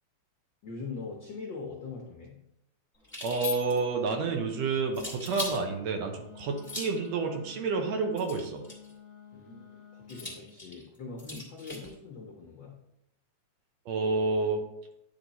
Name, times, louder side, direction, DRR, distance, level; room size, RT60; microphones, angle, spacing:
voice 1, 0.6-2.5 9.3-12.8, left 4 dB, 85° left, 0 dB, 1.0 m, -42 dB
sound 1, 3.0-3.9 4.9-5.6 6.6-7.1 8.1-8.9 10.1-11.9, left 3 dB, 5° left, 1.4 m, -39 dB
voice 2, 3.2-8.6 13.9-14.6, right 4 dB, 70° right, 4 dB, 1.9 m, -29 dB
Wind instrument woodwind instrument, 6.1-10.5, left 7 dB, 55° left, 1.0 m, -51 dB
9.8 x 3.4 x 4.0 m, 0.82 s
omnidirectional pair, 3.3 m